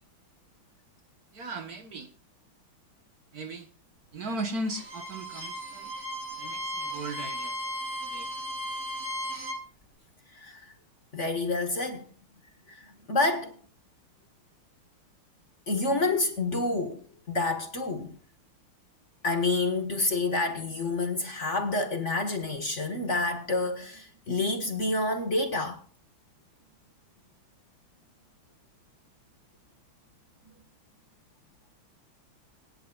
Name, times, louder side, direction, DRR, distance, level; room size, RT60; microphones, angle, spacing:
voice 1, 1.3-2.1 3.3-3.7 4.1-5.9 6.3-7.6 8.0-8.3, right 2 dB, 50° right, 1.7 m, -37 dB
Bowed string instrument, 4.6-9.6, equal, 30° right, 5.9 m, -36 dB
voice 2, 10.3-10.7 11.1-12.1 12.7-13.6 15.7-18.2 19.2-25.8, left 2 dB, 40° left, 1.5 m, -28 dB
25.0 x 10.0 x 2.4 m
omnidirectional pair, 2.3 m